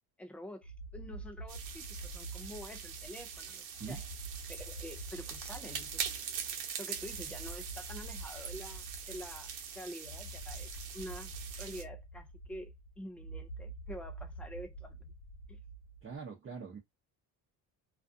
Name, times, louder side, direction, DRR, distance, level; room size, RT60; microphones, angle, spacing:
voice 1, 0.2-4.0 4.5-6.2 6.8-15.1 15.5-15.6, equal, 5° left, 0.3 m, -47 dB
sound 1, 0.6-16.2, right 2 dB, 85° left, 1.0 m, -47 dB
sound 2, 1.5-11.8, right 7 dB, 90° right, 0.9 m, -43 dB
voice 2, 16.0-16.8, right 5 dB, 25° right, 0.7 m, -43 dB
2.4 x 2.3 x 2.5 m
cardioid pair, 125°, 46 cm